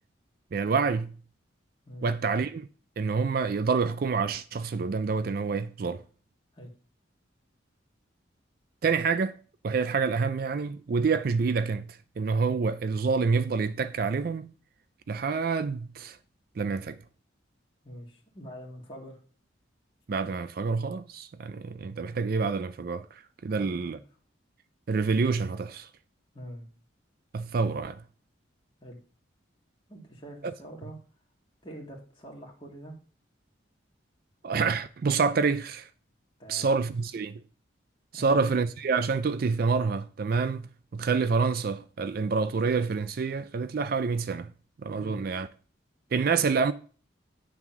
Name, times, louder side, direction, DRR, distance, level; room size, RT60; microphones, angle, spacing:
voice 1, 0.5-1.1 2.0-2.7 3.0-6.0 8.8-9.4 9.6-14.5 15.1-16.2 16.6-17.0 20.1-24.0 24.9-25.9 27.3-28.0 34.4-35.9 36.5-37.4 38.1-40.6 40.9-44.5 44.8-45.5 46.1-46.7, right 4 dB, 50° right, 0.4 m, -27 dB
voice 2, 17.8-19.2 23.5-24.0 26.3-26.7 28.8-29.0 29.9-31.0 31.6-32.9 36.4-36.7 38.1-38.4 45.0-45.4, equal, 25° left, 1.9 m, -44 dB
9.2 x 3.5 x 5.8 m
head